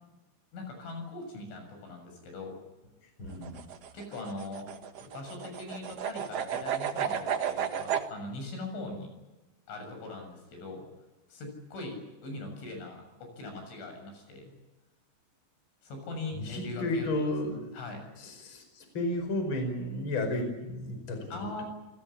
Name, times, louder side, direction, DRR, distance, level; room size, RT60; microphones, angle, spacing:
voice 1, 0.5-2.6 3.9-4.7 5.0-9.1 9.7-10.9 11.3-14.5 15.8-18.1 21.3-21.7, left 2 dB, 90° left, 4 dB, 9.5 m, -41 dB
voice 2, 3.2-3.6 16.3-17.6 18.2-21.5, left 1 dB, 25° left, 6 dB, 5.4 m, -33 dB
sound 1, 3.3-8.1, right 8 dB, 80° right, 1.4 m, -33 dB
29.0 x 19.0 x 8.6 m, 1.1 s
omnidirectional pair, 5.3 m